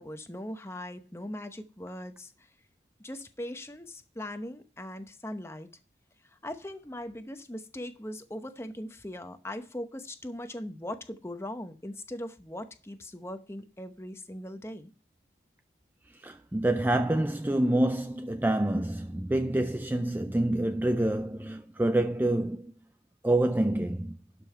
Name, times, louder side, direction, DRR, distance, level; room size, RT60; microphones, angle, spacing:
voice 1, 0.0-2.5 3.0-5.7 6.2-14.9, left 1 dB, 15° left, 0.9 m, -40 dB
voice 2, 16.2-22.7 23.2-24.2, right 1 dB, 10° right, 0.3 m, -27 dB
12.0 x 5.5 x 4.5 m
head